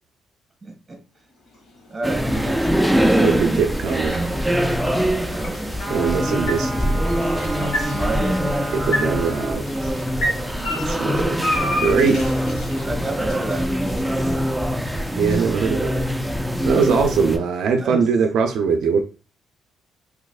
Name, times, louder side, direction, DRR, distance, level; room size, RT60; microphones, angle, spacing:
voice 1, 0.6-1.0 1.9-3.2 4.9-5.6 7.6-8.7 12.0-12.1 12.8-14.4 17.8-18.0, right 2 dB, 20° right, 1.3 m, -31 dB
sound 1, 1.4-17.6, left 1 dB, 70° left, 1.3 m, -33 dB
sound 2, 2.0-17.4, equal, 5° right, 0.4 m, -23 dB
voice 2, 3.2-4.3 5.9-6.9 8.7-9.9 10.8-11.4 11.8-12.2 15.1-16.0 16.6-19.0, right 5 dB, 75° right, 0.4 m, -21 dB
sound 3, 5.8-9.6, right 1 dB, 40° left, 1.6 m, -33 dB
3.4 x 3.1 x 2.3 m
cardioid pair, 90°, 0 cm